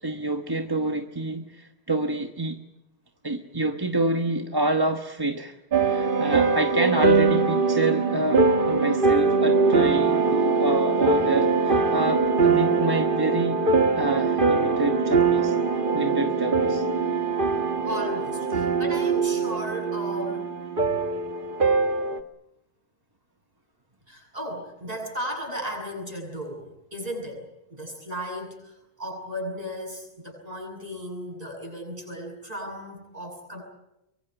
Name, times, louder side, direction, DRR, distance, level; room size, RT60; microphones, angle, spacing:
voice 1, 0.0-2.6 3.2-5.5 5.9-13.6 14.0-15.6 15.9-16.8, right 2 dB, 25° right, 5 dB, 1.2 m, -27 dB
sound 1, 5.7-22.2, right 4 dB, 55° right, 1.6 m, -22 dB
voice 2, 17.8-20.5 24.1-33.6, equal, 40° right, 2 dB, 8.1 m, -35 dB
24.5 x 23.5 x 8.0 m, 0.88 s
omnidirectional pair, 1.0 m